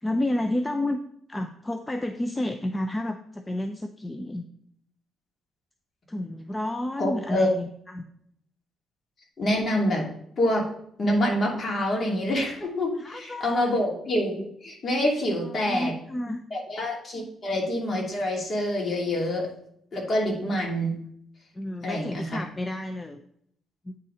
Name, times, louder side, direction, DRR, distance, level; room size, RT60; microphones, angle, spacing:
voice 1, 0.0-1.0 1.3-4.5 6.1-8.0 12.9-13.7 15.4-16.4 21.5-23.2 23.8-23.9, left 1 dB, 15° left, 7 dB, 0.5 m, -31 dB
voice 2, 7.0-7.5 9.4-10.1 10.4-10.6 11.0-15.9 16.5-19.5 19.9-20.9 21.8-22.3, left 1 dB, 40° left, -1 dB, 2.6 m, -26 dB
8.8 x 4.2 x 4.9 m, 0.69 s
cardioid pair, 90°, 0 cm